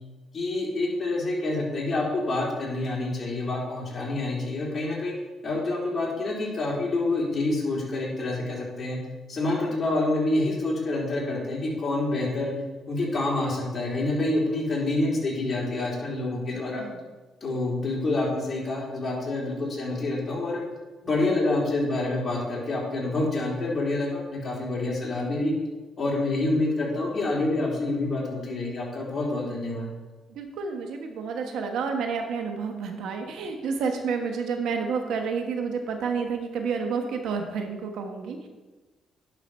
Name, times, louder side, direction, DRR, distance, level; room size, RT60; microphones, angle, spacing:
voice 1, 0.3-5.1 5.4-9.0 9.3-12.5 12.9-16.8 17.4-20.6 21.0-25.5 26.0-29.9, left 2 dB, 35° left, -4 dB, 3.2 m, -27 dB
voice 2, 30.3-38.5, right 5 dB, 80° right, 4 dB, 1.2 m, -30 dB
10.5 x 4.8 x 5.5 m, 1.2 s
cardioid pair, 90°, 0 cm